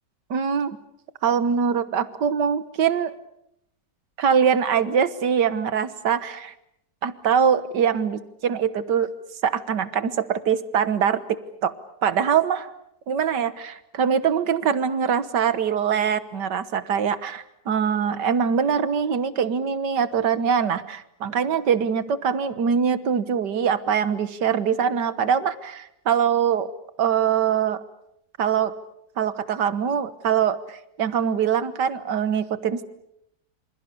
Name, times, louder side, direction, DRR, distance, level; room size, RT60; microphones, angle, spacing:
voice 1, 0.3-0.8 1.2-3.1 4.2-6.5 7.0-9.1 9.4-11.7 12.0-12.7 13.1-26.7 27.0-27.8 28.4-28.7 29.2-32.9, right 7 dB, 85° right, 13 dB, 1.9 m, -23 dB
27.5 x 26.5 x 6.9 m, 0.78 s
omnidirectional pair, 1.8 m